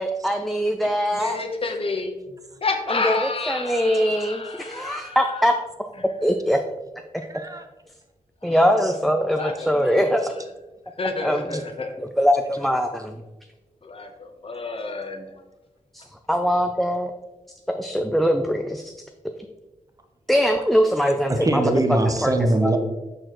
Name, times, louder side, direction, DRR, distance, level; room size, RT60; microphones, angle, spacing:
voice 1, 0.0-1.4 2.9-5.5 6.2-6.6 8.4-10.2 11.2-11.6 12.0-13.1 16.3-17.1 17.7-18.8 20.3-21.3 22.2-22.3 22.6-22.7, equal, ahead, 4 dB, 0.4 m, -22 dB
voice 2, 1.1-2.2 2.6-5.2 8.4-9.0 9.3-10.2 11.0-11.9 13.8-15.3, left 3 dB, 45° left, 4 dB, 1.0 m, -30 dB
voice 3, 3.7-4.0 7.2-7.7 8.8-9.0 11.5-11.6 21.3-22.8, right 2 dB, 25° right, 5 dB, 0.8 m, -23 dB
6.6 x 6.4 x 3.0 m, 1.1 s
wide cardioid pair, 115°, 14 cm